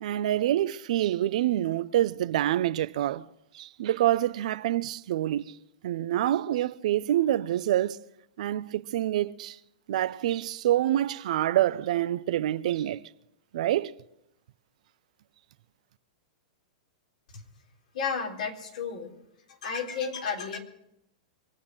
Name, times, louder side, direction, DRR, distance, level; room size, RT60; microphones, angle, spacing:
voice 1, 0.0-3.2 3.5-5.6 5.8-8.0 8.4-9.6 9.9-13.0 13.5-13.9, right 13 dB, 65° right, 0.6 m, -26 dB
voice 2, 17.9-19.1 19.5-20.6, left 6 dB, 70° left, 3.8 m, -32 dB
24.5 x 8.5 x 6.2 m
hypercardioid pair, 120°, 4 cm